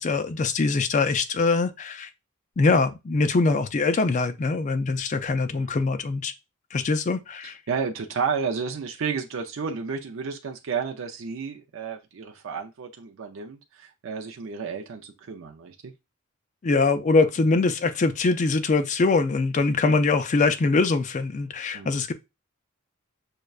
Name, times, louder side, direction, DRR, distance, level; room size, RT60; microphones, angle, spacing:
voice 1, 0.0-2.1 2.6-6.3 6.7-7.6 16.6-22.1, left 3 dB, 35° left, 0.4 m, -23 dB
voice 2, 7.7-15.9 21.7-22.0, right 5 dB, 65° right, 0.5 m, -32 dB
6.3 x 2.2 x 2.3 m
head